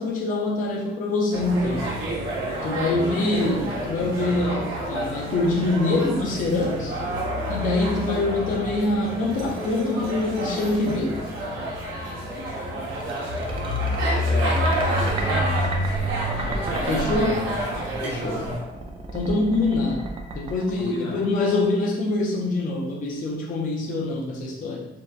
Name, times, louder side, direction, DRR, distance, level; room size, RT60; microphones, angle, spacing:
voice 1, 0.0-1.9 2.6-7.0 7.5-11.3 16.9-17.5 19.1-20.1 20.3-24.9, left 2 dB, 40° left, -2 dB, 0.4 m, -24 dB
sound 1, 1.3-18.6, equal, 90° right, 0.6 m, -28 dB
sound 2, 12.9-21.6, right 2 dB, 25° right, 0.3 m, -35 dB
voice 2, 14.3-14.8 16.4-17.2 18.0-18.5 20.8-21.3, left 2 dB, 75° left, -4 dB, 0.8 m, -34 dB
2.6 x 2.1 x 2.3 m, 0.98 s
cardioid pair, 90°, 20 cm